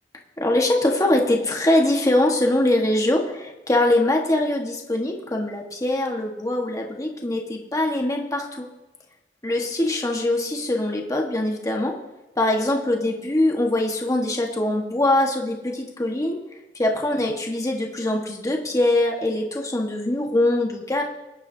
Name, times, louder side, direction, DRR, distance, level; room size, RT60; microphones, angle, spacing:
voice 1, 0.4-8.6 9.4-11.9 12.4-16.4 16.8-21.0, left 1 dB, 20° left, 0 dB, 1.4 m, -22 dB
22.0 x 10.5 x 2.8 m, 1.0 s
head